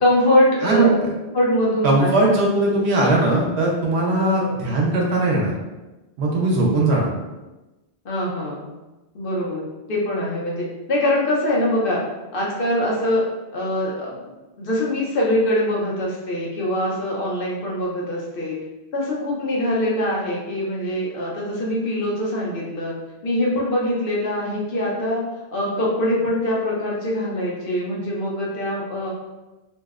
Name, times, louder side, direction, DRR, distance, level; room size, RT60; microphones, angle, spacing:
voice 1, 0.0-0.9 1.3-2.2 4.2-4.6 8.0-8.7 9.1-12.0 12.3-13.2 13.5-14.2 14.6-18.6 18.9-22.9 23.2-25.2 25.5-29.1, left 1 dB, 65° left, -4 dB, 0.8 m, -23 dB
voice 2, 0.6-0.9 1.8-5.5 6.2-7.1, right 2 dB, 85° right, -2 dB, 0.9 m, -19 dB
2.6 x 2.0 x 2.3 m, 1.1 s
omnidirectional pair, 1.1 m